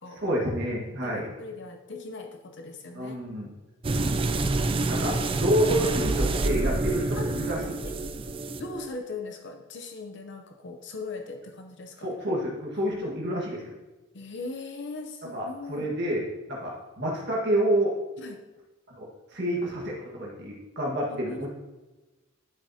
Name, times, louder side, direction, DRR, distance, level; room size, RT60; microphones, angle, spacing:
voice 1, 0.2-1.3 2.9-3.5 4.8-7.8 8.1-8.3 12.0-13.7 15.3-17.9 18.9-21.5, equal, 55° right, -3 dB, 1.6 m, -29 dB
voice 2, 1.0-3.2 3.9-4.0 7.2-7.3 7.8-7.9 8.6-12.1 14.1-15.9 18.2-18.4 21.1-21.5, left 3 dB, 60° left, 4 dB, 0.7 m, -39 dB
sound 1, 3.8-8.9, right 2 dB, 25° right, 0.4 m, -27 dB
11.0 x 6.3 x 2.8 m, 1.1 s
head